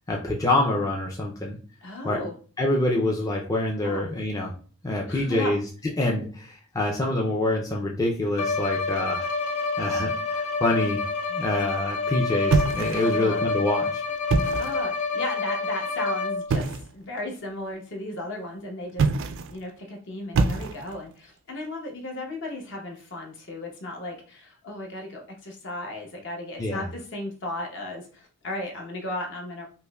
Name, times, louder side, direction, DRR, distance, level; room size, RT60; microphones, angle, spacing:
voice 1, 0.1-1.6 2.0-2.2 2.6-4.5 4.8-5.6 6.0-9.3 9.8-11.0 11.3-14.0 26.6-26.8, left 1 dB, 15° left, -1 dB, 0.4 m, -26 dB
voice 2, 1.8-2.3 3.8-4.0 5.1-5.5 13.0-13.4 14.4-29.6, left 1 dB, 55° left, 1 dB, 0.9 m, -35 dB
Bowed string instrument, 8.3-16.6, left 4 dB, 80° left, 0.6 m, -28 dB
sound 1, 12.5-13.3 14.2-14.9 16.5-16.9 18.9-19.6 20.3-21.1, right 4 dB, 55° right, 0.3 m, -25 dB
5.3 x 2.1 x 2.2 m, 0.39 s
head